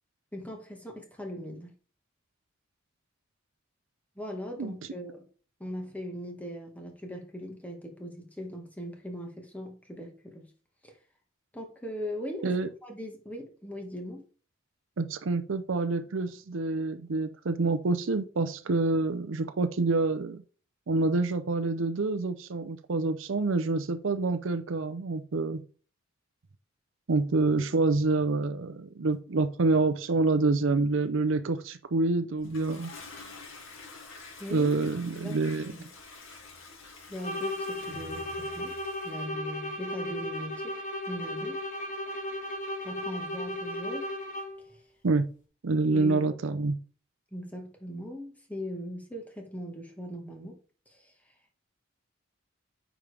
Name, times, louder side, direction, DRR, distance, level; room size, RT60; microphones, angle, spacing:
voice 1, 0.3-1.7 4.1-5.3 5.6-10.5 10.8-10.9 11.5-12.6 12.8-14.3 34.4-34.7 35.1-35.3 35.6-35.9 37.1-38.8 39.0-40.8 41.1-41.6 42.8-44.1 44.7-44.8 45.9-46.3 47.3-50.6 50.9-51.1, equal, 10° left, 1.6 m, -39 dB
voice 2, 15.0-20.4 20.9-25.6 27.1-32.9 34.5-35.9 45.0-45.3 45.6-46.8, right 3 dB, 70° right, 0.6 m, -27 dB
Toilet flush, 32.4-39.2, left 3 dB, 70° left, 2.2 m, -48 dB
sound 1, 37.2-44.7, left 1 dB, 40° left, 1.7 m, -35 dB
8.7 x 5.0 x 3.4 m
head